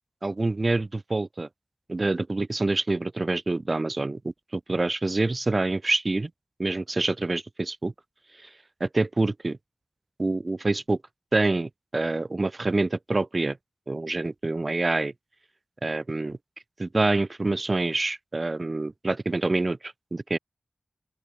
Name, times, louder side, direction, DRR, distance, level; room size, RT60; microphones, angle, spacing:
voice 1, 0.2-1.5 1.9-6.3 6.6-7.9 8.4-8.5 8.8-9.6 10.2-11.0 11.3-13.6 13.9-15.1 15.8-16.4 16.8-20.4, right 2 dB, 40° right, 1.8 m, -26 dB
open air
wide cardioid pair, 85°, 0 cm